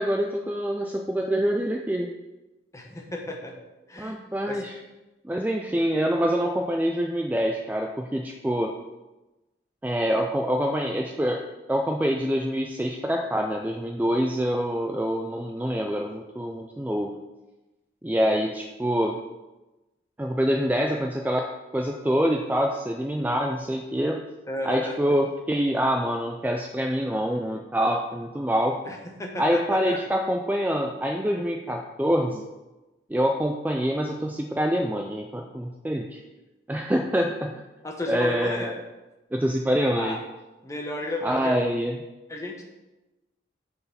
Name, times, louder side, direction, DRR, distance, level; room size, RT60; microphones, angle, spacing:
voice 1, 0.0-2.1 4.0-4.8 5.2-8.7 9.8-11.4 11.7-17.1 18.0-19.2 20.2-21.5 21.7-24.2 24.6-28.8 29.4-32.4 33.1-36.2 36.7-37.5 38.1-38.7 39.3-40.2 41.2-42.0, equal, 10° right, 2 dB, 0.3 m, -25 dB
voice 2, 2.7-3.5 3.9-4.2 4.5-4.6 24.5-25.0 28.8-30.0 37.8-38.8 40.0-40.2 40.6-41.6 42.3-42.6, left 1 dB, 15° left, 1 dB, 0.9 m, -33 dB
6.6 x 4.5 x 5.7 m, 1.1 s
head